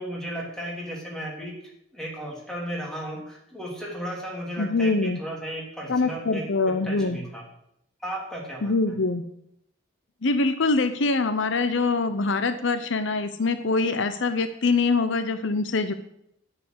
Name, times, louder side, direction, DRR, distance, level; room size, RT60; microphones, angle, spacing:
voice 1, 0.0-6.4 6.8-7.4 8.0-8.7, equal, 5° left, -3 dB, 3.2 m, -35 dB
voice 2, 4.6-5.2 5.9-7.2 8.6-9.2 10.2-15.9, left 3 dB, 65° left, 10 dB, 0.7 m, -24 dB
9.3 x 7.6 x 8.0 m, 0.76 s
head